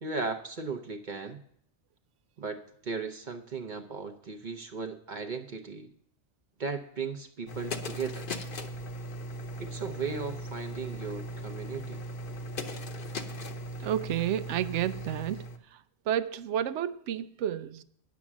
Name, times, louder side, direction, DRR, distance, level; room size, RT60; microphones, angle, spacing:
voice 1, 0.0-1.4 2.4-5.9 6.6-8.3 9.6-12.0, right 4 dB, 45° right, 0.9 m, -36 dB
sound 1, 7.5-15.6, equal, 50° left, 0.9 m, -38 dB
voice 2, 13.8-15.5 16.1-17.8, right 10 dB, 85° right, 0.9 m, -30 dB
9.9 x 7.2 x 6.1 m
omnidirectional pair, 1.2 m